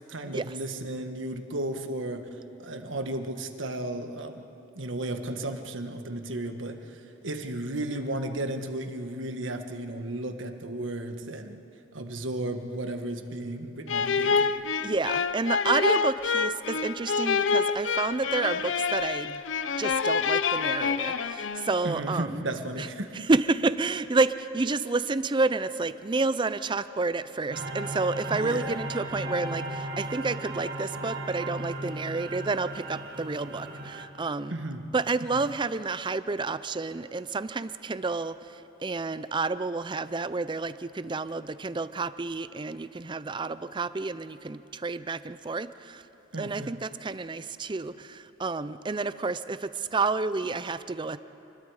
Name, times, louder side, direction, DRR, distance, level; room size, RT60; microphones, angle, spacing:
voice 1, 0.0-4.5 4.7-11.6 11.9-14.6 21.8-23.3 28.3-28.8 34.5-34.9 35.3-35.4 46.3-46.8, right 1 dB, 85° right, 6 dB, 1.5 m, -34 dB
sound 1, 13.9-21.9, left 5 dB, 75° left, 0.6 m, -27 dB
voice 2, 14.8-19.4 19.8-22.4 22.8-22.9 23.1-34.6 34.9-46.0 46.4-51.2, right 3 dB, 25° right, 14 dB, 0.5 m, -30 dB
sound 2, 27.5-34.1, right 1 dB, 55° right, 1.9 m, -36 dB
28.5 x 21.0 x 4.9 m, 2.9 s
head